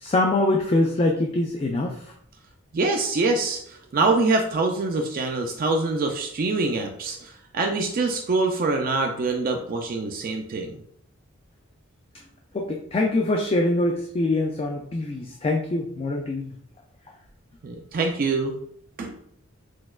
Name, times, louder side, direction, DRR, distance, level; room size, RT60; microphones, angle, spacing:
voice 1, 0.0-2.0 12.5-16.5, left 2 dB, 30° left, 2 dB, 0.3 m, -24 dB
voice 2, 2.7-10.7 17.6-18.6 19.0-19.2, right 3 dB, 45° right, 3 dB, 0.4 m, -25 dB
6.1 x 2.2 x 2.3 m, 0.67 s
head